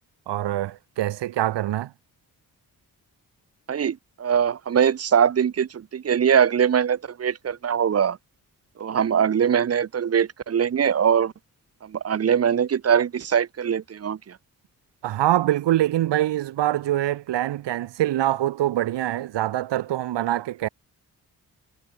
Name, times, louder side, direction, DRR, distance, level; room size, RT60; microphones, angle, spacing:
voice 1, 0.3-1.9 15.0-20.7, right 13 dB, 90° right, 1.3 m, -24 dB
voice 2, 3.7-8.2 8.8-11.3 11.8-14.2, right 8 dB, 35° right, 0.6 m, -22 dB
supercardioid pair, 45°, 41 cm